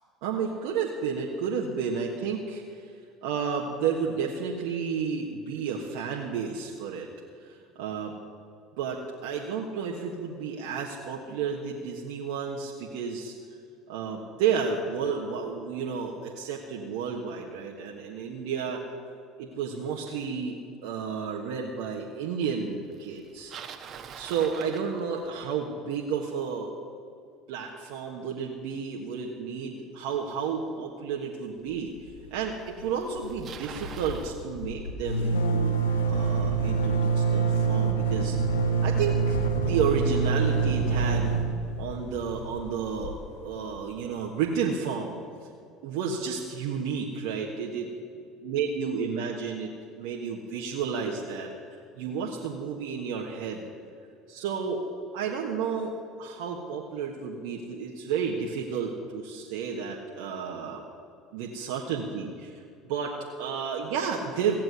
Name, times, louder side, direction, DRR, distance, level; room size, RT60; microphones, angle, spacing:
voice 1, 0.2-2.9 3.2-7.1 7.4-8.1 8.8-13.3 13.9-18.8 19.4-23.5 24.1-26.7 27.5-38.4 38.8-41.3 41.8-43.2 43.4-45.2 45.8-47.9 48.4-49.7 50.0-53.6 54.3-54.8 55.1-60.8 61.3-64.6, right 6 dB, 75° right, -1 dB, 1.4 m, -31 dB
Bicycle, 23.2-25.5 30.6-30.7 31.5-31.6 32.6-32.7 32.9-34.4, right 7 dB, 50° right, 1.3 m, -43 dB
sound 1, 32.0-32.5 32.8-32.9 33.2-43.8, right 4 dB, 90° left, 1.3 m, -26 dB
16.5 x 7.6 x 9.8 m, 2.4 s
hypercardioid pair, 75°, 0 cm